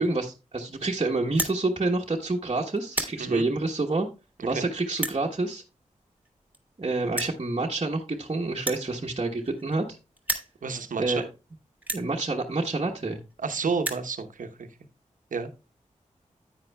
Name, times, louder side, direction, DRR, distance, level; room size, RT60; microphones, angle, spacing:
voice 1, 0.0-4.1 4.4-5.6 6.8-9.9 11.0-11.2 11.9-13.2, right 2 dB, 40° right, -2 dB, 1.2 m, -28 dB
sound 1, 1.3-1.6 2.2-2.5 2.8-3.2 3.9-4.0 4.9-5.2 6.3-6.4 6.5-6.6 7.1-7.4 8.6-9.9 10.2-10.5 11.2-11.3 11.8-12.1 13.0-13.1 13.3-13.4 13.6-14.1, right 2 dB, 10° right, 2.0 m, -32 dB
voice 2, 10.6-11.2 13.4-14.7 15.3-15.5, right 5 dB, 75° right, 8 dB, 1.0 m, -30 dB
9.7 x 9.0 x 2.3 m, 0.28 s
cardioid pair, 45°, 13 cm